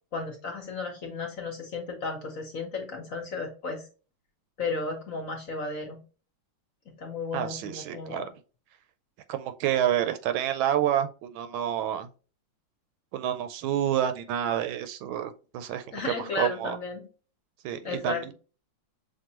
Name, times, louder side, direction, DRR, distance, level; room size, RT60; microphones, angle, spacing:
voice 1, 0.1-3.9 4.6-6.0 6.8-8.3 15.9-17.0 17.8-18.3, left 4 dB, 50° left, 1.1 m, -34 dB
voice 2, 7.3-8.2 9.3-12.1 13.1-16.8 17.6-18.3, right 10 dB, 80° right, 1.3 m, -28 dB
6.0 x 2.5 x 2.9 m
omnidirectional pair, 2.3 m